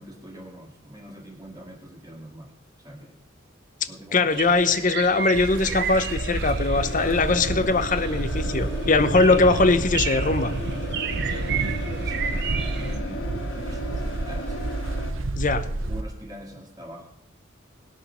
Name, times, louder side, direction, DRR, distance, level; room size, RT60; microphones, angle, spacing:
voice 1, 0.0-3.2 3.9-4.3 11.2-14.7 15.5-17.1, equal, 20° right, 1 dB, 2.0 m, -44 dB
voice 2, 4.1-10.6 15.4-15.7, left 3 dB, 40° left, 12 dB, 0.8 m, -21 dB
sound 1, 4.3-13.0, right 7 dB, 55° right, 1.1 m, -33 dB
sound 2, 5.3-16.0, right 2 dB, 75° right, 0.9 m, -30 dB
sound 3, 6.7-15.1, equal, 65° left, 1.7 m, -36 dB
19.5 x 6.6 x 5.6 m, 0.79 s
head